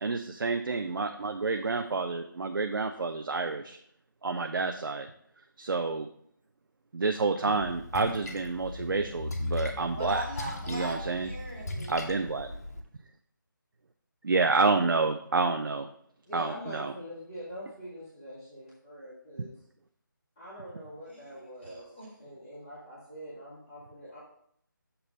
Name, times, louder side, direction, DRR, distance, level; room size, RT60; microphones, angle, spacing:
voice 1, 0.0-3.8 4.2-5.1 5.6-6.1 6.9-10.2 10.7-11.3 11.9-12.5 14.2-15.9 16.3-16.9, right 4 dB, 75° right, 6 dB, 0.5 m, -29 dB
Splash splatter, 7.5-12.8, left 2 dB, 45° left, 0.8 m, -37 dB
voice 2, 9.9-12.1 21.1-21.2 21.6-22.1, right 1 dB, ahead, -11 dB, 0.3 m, -40 dB
voice 3, 16.2-19.5 20.4-21.8 22.2-24.2, equal, 15° left, -11 dB, 1.0 m, -44 dB
6.8 x 2.9 x 5.2 m, 0.67 s
figure-of-eight pair, 170°, 11 cm